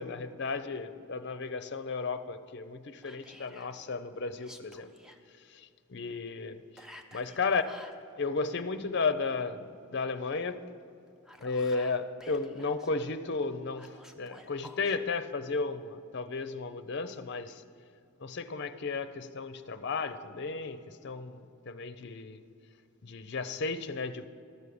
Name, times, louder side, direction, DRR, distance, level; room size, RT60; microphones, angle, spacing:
voice 1, 0.0-4.9 5.5-6.6 7.1-7.6 8.2-10.6 11.4-13.9 14.2-17.6 18.2-22.4 23.0-24.3, left 4 dB, 55° left, 10 dB, 0.5 m, -34 dB
Whispering, 3.0-3.7 4.3-5.2 6.8-8.0 11.1-12.9 13.8-15.0, left 1 dB, ahead, 0.4 m, -52 dB
13.0 x 6.3 x 6.9 m, 2.5 s
head